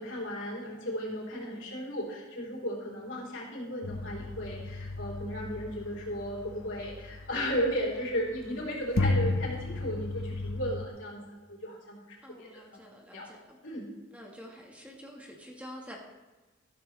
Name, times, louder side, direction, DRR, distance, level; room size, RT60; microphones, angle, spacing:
voice 1, 0.0-11.2 11.5-12.8 13.1-13.3 13.6-13.9, equal, 65° left, -2 dB, 4.0 m, -35 dB
voice 2, 1.3-1.7 12.2-13.6 14.1-16.0, equal, 5° right, -1 dB, 1.7 m, -48 dB
sound 1, 3.8-7.7 8.4-8.5 8.9-10.9, left 2 dB, 90° left, 1.2 m, -33 dB
14.0 x 13.0 x 3.4 m, 1.2 s
head